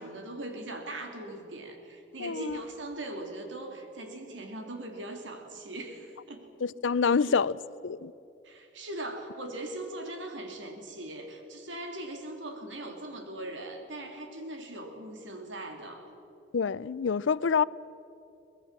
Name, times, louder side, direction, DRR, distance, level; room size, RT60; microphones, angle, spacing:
voice 1, 0.0-6.5 7.2-7.3 8.4-16.1, right 1 dB, 75° right, 3.0 m, -40 dB
voice 2, 2.2-2.6 6.6-7.6 7.8-8.1 16.5-17.6, left 5 dB, 85° left, 0.5 m, -26 dB
23.5 x 20.0 x 7.4 m
head